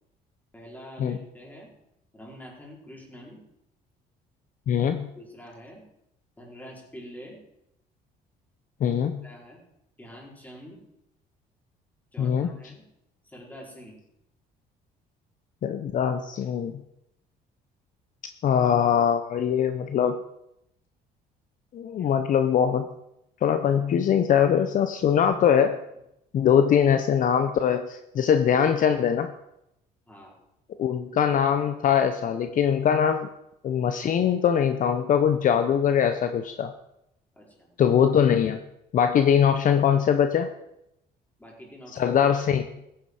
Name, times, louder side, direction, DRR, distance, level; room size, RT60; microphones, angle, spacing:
voice 1, 0.5-1.7 2.1-3.4 5.2-5.8 6.4-7.4 9.2-9.6 10.0-10.8 12.1-12.8 13.2-14.0 22.0-22.1 30.1-30.4 37.3-37.7 41.4-42.2, equal, 10° left, -3 dB, 5.1 m, -45 dB
voice 2, 4.7-5.1 8.8-9.2 12.2-12.5 15.6-16.7 18.4-20.2 21.7-22.9 23.4-25.8 26.3-29.3 30.8-33.3 33.6-36.7 37.8-38.6 38.9-40.5 41.9-42.7, left 8 dB, 50° left, 8 dB, 0.9 m, -22 dB
15.0 x 10.5 x 5.0 m, 0.83 s
cardioid pair, 110°, 17 cm